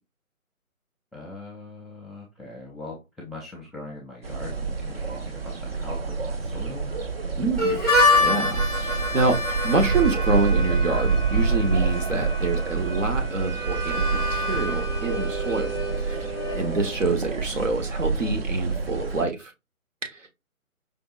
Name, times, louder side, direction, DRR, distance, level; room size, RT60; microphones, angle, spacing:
voice 1, 1.1-6.9, left 2 dB, ahead, -3 dB, 0.4 m, -41 dB
sound 1, 4.2-19.3, right 4 dB, 45° right, 0.7 m, -28 dB
voice 2, 7.4-7.8 8.2-9.4 9.6-16.3 16.5-19.5 20.0-20.3, right 3 dB, 60° right, 5 dB, 1.2 m, -26 dB
Harmonica, 7.6-17.2, left 2 dB, 15° right, 0.9 m, -27 dB
5.2 x 2.8 x 2.4 m, 0.23 s
figure-of-eight pair, 150°, 43 cm